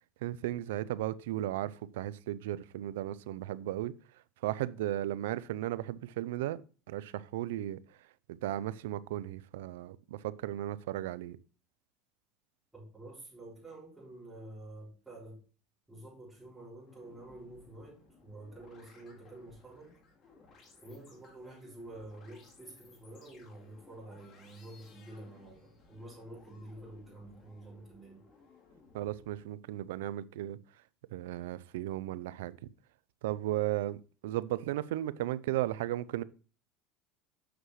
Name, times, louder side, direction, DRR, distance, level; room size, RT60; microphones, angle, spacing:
voice 1, 0.2-3.9 4.4-6.6 6.9-7.8 8.3-11.4 28.9-30.6 31.1-32.6 33.2-36.2, right 14 dB, 85° right, 0.4 m, -35 dB
voice 2, 12.7-15.4 15.9-20.0 20.8-28.2, right 1 dB, 5° right, 3.9 m, -49 dB
sound 1, 16.9-29.4, left 3 dB, 40° left, 2.2 m, -60 dB
8.0 x 6.3 x 3.2 m
supercardioid pair, 120°, 0 cm